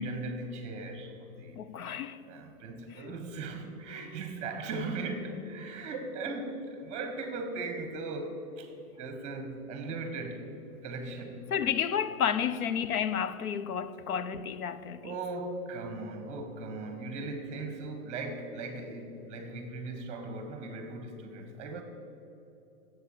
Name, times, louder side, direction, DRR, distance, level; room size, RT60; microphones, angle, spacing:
voice 1, 0.0-1.6 2.3-10.5 10.8-11.7 12.5-12.7 15.0-21.8, right 3 dB, 15° right, 1.2 m, -38 dB
voice 2, 1.6-2.2 11.5-15.1, left 8 dB, 85° left, 0.8 m, -31 dB
9.9 x 8.1 x 8.3 m
hypercardioid pair, 160°, 42 cm